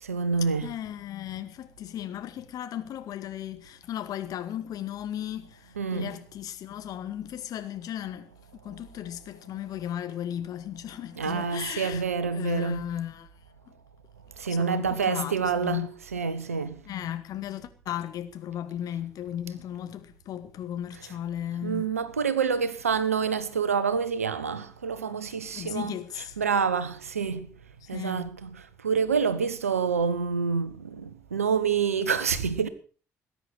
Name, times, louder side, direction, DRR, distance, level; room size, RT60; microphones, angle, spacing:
voice 1, 0.0-0.7 5.8-6.1 11.2-12.8 14.4-15.9 16.1-16.8 21.6-25.9 26.4-27.5 27.9-28.6 28.8-32.7, right 6 dB, 80° right, 1.1 m, -27 dB
voice 2, 0.6-8.3 8.6-12.0 12.3-13.3 14.5-15.9 16.8-21.9 25.5-26.4 27.8-28.3, left 11 dB, 55° left, 2.0 m, -36 dB
19.5 x 10.0 x 6.4 m
figure-of-eight pair, 45°, 8 cm